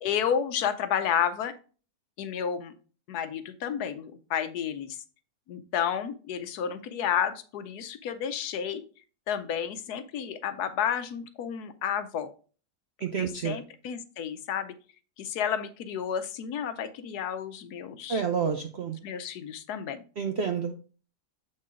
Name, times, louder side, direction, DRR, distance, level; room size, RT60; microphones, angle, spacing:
voice 1, 0.0-1.5 2.2-2.7 3.1-5.0 5.5-8.8 9.3-12.3 13.2-14.7 15.2-18.2 19.0-20.0, left 8 dB, 75° left, 11 dB, 1.2 m, -31 dB
voice 2, 13.0-13.6 18.1-19.0 20.2-20.7, right 6 dB, 65° right, 5 dB, 0.6 m, -29 dB
7.5 x 4.3 x 3.6 m, 0.38 s
omnidirectional pair, 1.8 m